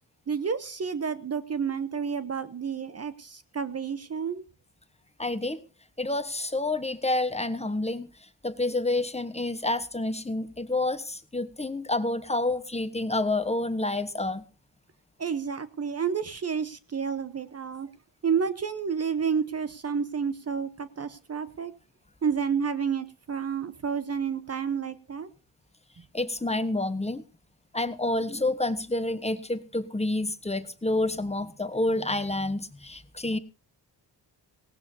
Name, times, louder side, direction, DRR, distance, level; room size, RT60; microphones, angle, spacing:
voice 1, 0.3-4.4 15.2-17.9 18.2-21.7 22.2-25.3 26.0-26.1, right 6 dB, 35° right, 14 dB, 0.9 m, -30 dB
voice 2, 5.2-5.6 6.0-8.1 8.4-14.4 26.1-27.2 27.7-33.4, left 2 dB, 15° left, 11 dB, 1.1 m, -28 dB
18.5 x 16.5 x 2.7 m, 0.32 s
cardioid pair, 70°, 43 cm